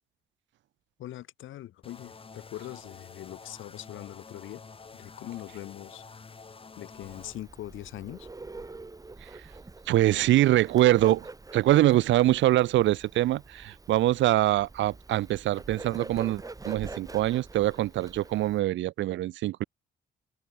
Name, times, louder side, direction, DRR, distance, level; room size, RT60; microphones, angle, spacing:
voice 1, 1.0-4.6 4.9-6.0 6.8-8.3, left 13 dB, 80° left, 2.6 m, -42 dB
sound 1, 1.8-7.4, left 4 dB, 25° left, 1.6 m, -48 dB
Bird, 7.0-18.6, right 3 dB, 15° right, 1.3 m, -45 dB
voice 2, 9.9-11.3 11.5-19.6, right 15 dB, 70° right, 0.5 m, -24 dB
cardioid pair, 90°, 20 cm